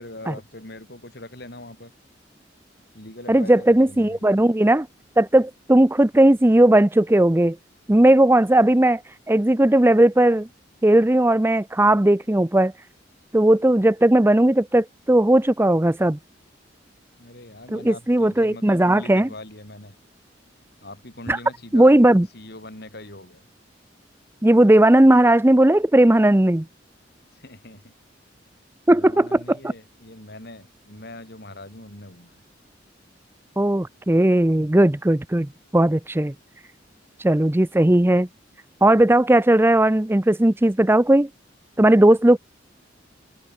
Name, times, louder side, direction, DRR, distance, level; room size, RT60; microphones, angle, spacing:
voice 1, 0.0-1.9 2.9-4.2 17.2-20.0 20.8-21.9 22.3-23.4 27.3-27.9 28.9-32.4, left 1 dB, 60° left, 6.9 m, -41 dB
voice 2, 3.3-4.9 5.2-7.6 7.9-9.0 9.3-10.5 10.8-12.7 13.3-16.2 17.7-19.3 21.3-21.4 21.7-22.3 24.4-26.6 28.9-29.7 33.6-36.3 37.2-38.3 38.8-41.3 41.8-42.4, right 1 dB, 10° right, 0.6 m, -17 dB
head